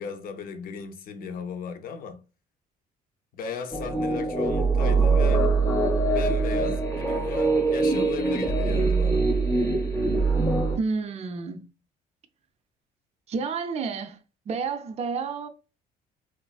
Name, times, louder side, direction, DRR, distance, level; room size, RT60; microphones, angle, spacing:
voice 1, 0.0-2.2 3.3-5.6 6.1-9.3, left 6 dB, 60° left, 0.5 m, -36 dB
sound 1, 3.7-10.8, right 3 dB, 15° left, 0.8 m, -23 dB
voice 2, 10.8-11.7 13.3-14.2 14.5-15.5, right 4 dB, 40° right, 0.4 m, -30 dB
3.0 x 2.4 x 2.3 m
cardioid pair, 110°, 17 cm